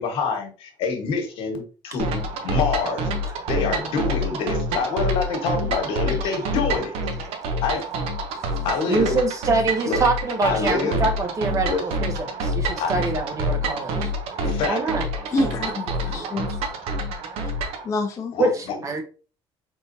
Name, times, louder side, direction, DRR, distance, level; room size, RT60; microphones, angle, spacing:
voice 1, 0.0-3.1 3.5-6.9 7.6-7.8 8.6-9.2 9.8-10.0 10.4-11.0 11.7-11.8 12.8-12.9 14.4-14.8 18.3-18.5, left 4 dB, 70° left, 1.3 m, -26 dB
sound 1, 2.0-17.9, right 1 dB, 80° right, 0.8 m, -27 dB
voice 2, 8.3-14.4 14.7-15.3 16.1-16.4 18.4-19.0, right 3 dB, 35° right, 0.8 m, -26 dB
voice 3, 15.3-16.5 17.4-17.5 17.8-18.3, left 2 dB, 30° left, 0.6 m, -27 dB
4.2 x 3.6 x 2.7 m
cardioid pair, 125°, 10 cm